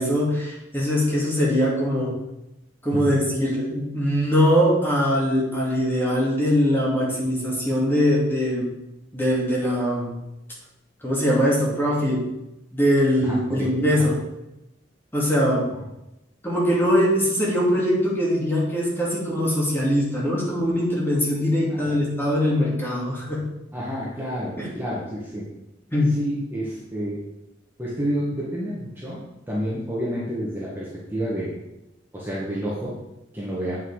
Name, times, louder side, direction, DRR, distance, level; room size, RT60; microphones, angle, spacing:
voice 1, 0.0-2.2 2.8-8.7 9.1-10.1 11.0-12.3 12.7-14.2 15.1-15.7 16.4-23.4 24.6-24.7 25.9-26.1, equal, 10° left, -5 dB, 2.5 m, -22 dB
voice 2, 13.2-13.7 14.0-14.1 21.7-22.0 23.7-25.5 26.1-27.2 27.8-31.5 32.1-32.9 33.3-33.8, equal, 10° right, -7 dB, 1.6 m, -29 dB
8.3 x 5.9 x 4.9 m, 0.94 s
head